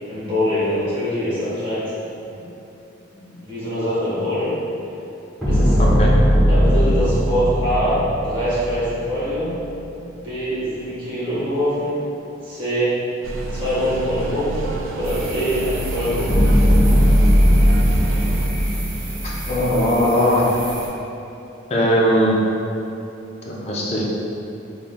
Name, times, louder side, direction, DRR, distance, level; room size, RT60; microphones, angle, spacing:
voice 1, 0.1-1.9 2.2-2.5 3.1-4.6 5.5-5.8 6.5-9.5 10.1-12.0 12.4-13.0 13.5-14.6 14.9-16.4, equal, 25° right, -11 dB, 1.2 m, -23 dB
sound 1, 5.4-9.7 16.3-20.0, equal, ahead, 1.0 m, -18 dB
voice 2, 5.8-6.1 19.2-20.5 21.7-22.3 23.5-24.0, equal, 30° left, -4 dB, 0.5 m, -19 dB
sound 2, 13.2-18.5, right 2 dB, 85° right, 0.3 m, -29 dB
sound 3, 15.0-20.9, right 2 dB, 60° right, 0.7 m, -35 dB
3.6 x 3.5 x 2.2 m, 2.9 s
head